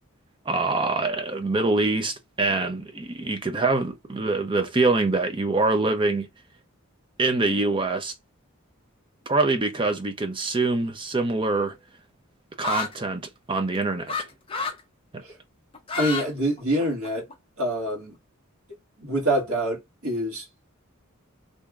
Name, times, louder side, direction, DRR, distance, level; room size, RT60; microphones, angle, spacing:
voice 1, 0.5-6.3 7.2-8.1 9.3-11.8 12.6-14.2 15.1-15.2, right 3 dB, 25° right, 0.5 m, -24 dB
sound 1, 12.6-12.9 14.1-14.2 14.5-14.8 15.7-16.3 16.6-17.3, left 5 dB, 25° left, 0.7 m, -29 dB
voice 2, 16.0-17.3 17.6-18.2 19.0-20.4, right 1 dB, 90° right, 1.5 m, -26 dB
3.2 x 2.7 x 2.3 m
head